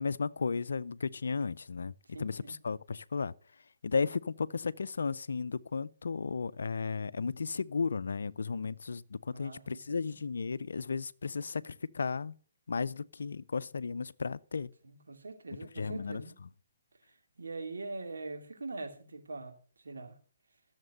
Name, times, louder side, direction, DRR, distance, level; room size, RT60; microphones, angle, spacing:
voice 1, 0.0-1.9 2.2-3.3 3.8-12.3 12.7-14.7 15.8-16.2, left 5 dB, 75° left, 0.5 m, -34 dB
voice 2, 2.0-2.6 9.3-10.2 14.8-16.3 17.0-20.2, right 3 dB, 80° right, 2.6 m, -43 dB
14.0 x 7.3 x 6.6 m
figure-of-eight pair, 135°, 0 cm